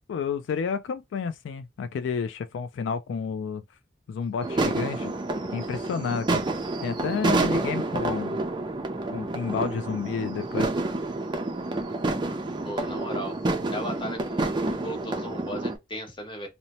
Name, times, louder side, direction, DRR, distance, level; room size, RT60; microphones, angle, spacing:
voice 1, 0.1-3.6 4.1-5.1 5.5-6.4 6.8-8.4 9.1-10.7, left 6 dB, 85° left, 0.3 m, -30 dB
sound 1, 4.4-15.8, right 2 dB, 25° right, 0.4 m, -28 dB
voice 2, 12.6-13.4 13.7-16.5, equal, 25° left, 0.9 m, -36 dB
2.7 x 2.1 x 2.9 m
head